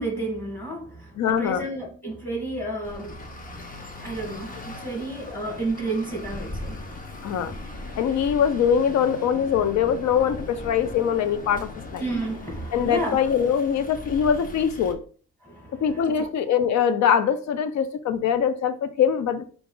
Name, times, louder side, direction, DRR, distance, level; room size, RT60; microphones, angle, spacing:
voice 1, 0.0-3.2 4.0-6.8 12.0-13.2 15.4-16.3, right 2 dB, 5° left, 1.8 m, -31 dB
voice 2, 1.2-1.6 7.2-7.5 8.0-12.0 12.7-15.0 15.8-19.5, left 8 dB, 65° left, 0.6 m, -23 dB
Traffic noise roadway noise, 2.8-14.9, left 2 dB, 30° left, 1.0 m, -39 dB
4.8 x 2.5 x 3.8 m
cardioid pair, 90°, 30 cm